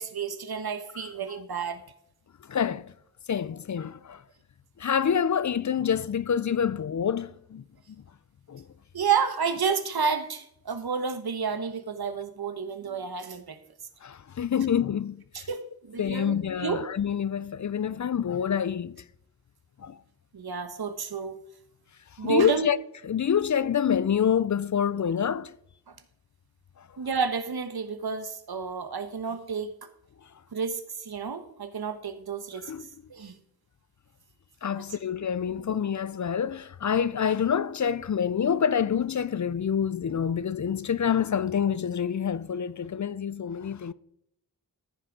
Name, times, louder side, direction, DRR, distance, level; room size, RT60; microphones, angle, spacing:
voice 1, 0.0-1.8 8.9-13.6 15.3-16.8 20.3-21.4 22.2-22.7 25.9-26.0 27.0-29.7 30.5-32.7 33.1-33.3 34.7-34.8 35.5-35.6, right 5 dB, 75° right, 1.3 m, -30 dB
voice 2, 2.5-2.9 3.3-4.2 4.8-7.6 8.5-8.6 14.0-15.5 16.0-19.0 19.8-20.0 22.2-22.8 23.0-25.5 32.7-32.8 34.6-43.9, left 8 dB, 50° left, 0.5 m, -27 dB
14.0 x 6.2 x 4.8 m
wide cardioid pair, 105°, 37 cm